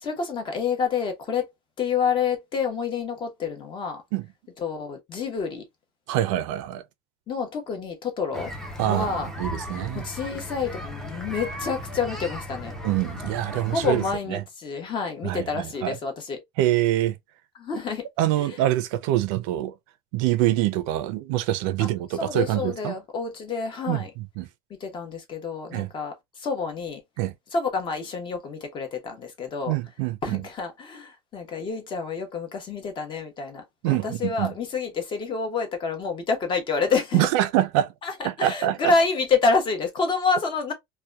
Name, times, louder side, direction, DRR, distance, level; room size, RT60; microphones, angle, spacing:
voice 1, 0.0-1.5 1.8-4.0 4.6-5.6 7.3-8.5 8.8-9.3 9.9-12.7 13.7-16.4 17.6-18.1 18.4-18.6 21.8-24.1 24.7-27.0 27.5-29.7 30.2-37.3 38.0-40.7, left 5 dB, 30° left, 0.8 m, -28 dB
voice 2, 6.1-6.8 8.8-10.1 12.8-14.0 14.3-14.4 15.2-15.9 16.6-17.2 18.2-19.7 20.1-22.9 23.9-24.5 25.7-25.9 27.2-27.3 29.7-30.4 33.8-34.5 37.1-37.9 38.2-38.9, right 14 dB, 80° right, 0.5 m, -25 dB
sound 1, 8.3-14.2, left 1 dB, 5° left, 0.5 m, -36 dB
2.8 x 2.2 x 2.3 m
cardioid pair, 155°, 16 cm